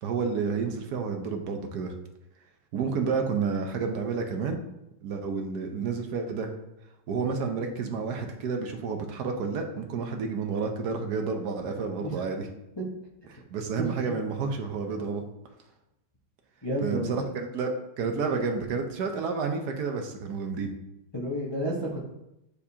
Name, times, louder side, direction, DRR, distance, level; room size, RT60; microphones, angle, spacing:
voice 1, 0.0-1.9 2.7-4.6 5.0-6.5 7.1-12.5 13.5-15.3 16.8-20.7, right 5 dB, 65° right, 4 dB, 1.0 m, -30 dB
voice 2, 13.8-14.1 16.6-17.3 21.1-22.0, equal, 35° left, -4 dB, 0.4 m, -31 dB
9.8 x 4.5 x 2.8 m, 0.89 s
omnidirectional pair, 2.3 m